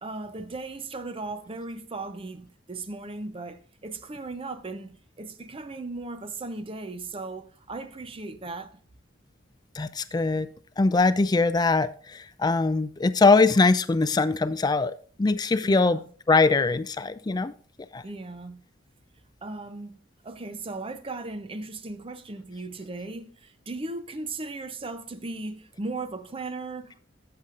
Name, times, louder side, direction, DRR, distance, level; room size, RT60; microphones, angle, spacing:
voice 1, 0.0-8.7 15.6-16.1 18.0-18.6 19.4-20.0 20.2-27.0, right 3 dB, 30° right, 0.6 m, -37 dB
voice 2, 9.8-10.5 10.8-11.9 12.4-16.0 16.3-17.5 17.9-18.0, left 3 dB, 20° left, 0.4 m, -22 dB
14.0 x 6.7 x 2.5 m
head